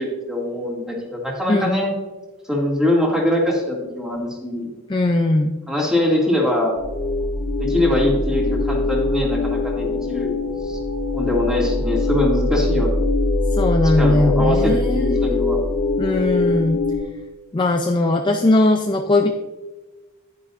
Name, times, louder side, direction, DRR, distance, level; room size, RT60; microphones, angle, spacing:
voice 1, 0.0-1.9 2.5-4.8 5.7-6.7 7.6-10.3 10.6-10.8 11.1-13.0 13.8-15.6, left 1 dB, 5° right, -2 dB, 2.2 m, -22 dB
voice 2, 4.9-5.6 13.6-15.4 16.0-16.8 17.5-19.3, left 2 dB, 20° left, 4 dB, 0.4 m, -19 dB
sound 1, 6.8-17.0, left 2 dB, 60° left, 1.6 m, -22 dB
10.5 x 9.7 x 2.5 m, 1.2 s
head